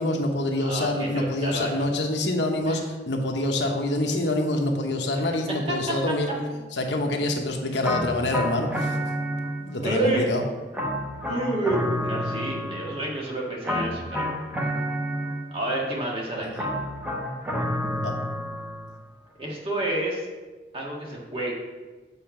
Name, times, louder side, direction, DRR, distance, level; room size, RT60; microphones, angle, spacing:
voice 1, 0.0-6.3 6.7-9.0 9.6-10.4 16.4-16.6 18.0-18.1, left 1 dB, 90° left, 3 dB, 1.0 m, -26 dB
voice 2, 0.6-1.9 2.7-2.8 5.1-5.3 5.7-5.8 9.8-10.3 11.3-14.2 15.5-16.7 19.4-20.3 20.7-21.5, right 1 dB, 30° right, -3 dB, 1.6 m, -29 dB
sound 1, 7.8-9.9 10.7-13.1 13.6-15.7 16.6-18.9, equal, 5° right, 0.9 m, -29 dB
7.1 x 4.2 x 5.9 m, 1.3 s
head